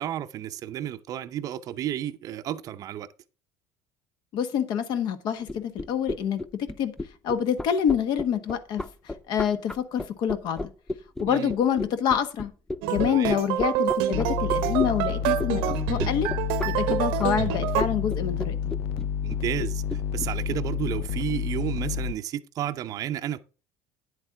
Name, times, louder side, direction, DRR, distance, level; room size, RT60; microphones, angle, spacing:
voice 1, 0.0-3.1 11.3-11.5 13.1-13.4 19.2-23.4, right 11 dB, 45° right, 0.6 m, -32 dB
voice 2, 4.3-6.9 7.2-10.7 11.2-12.5 12.9-16.3 16.6-18.6, left 8 dB, 55° left, 1.3 m, -27 dB
sound 1, 5.4-20.6, left 2 dB, 5° left, 0.4 m, -33 dB
sound 2, 12.8-17.8, right 12 dB, 75° right, 0.8 m, -27 dB
sound 3, 13.0-13.1 14.1-22.1, left 8 dB, 70° left, 0.5 m, -30 dB
9.9 x 8.0 x 3.7 m
cardioid pair, 140°, 9 cm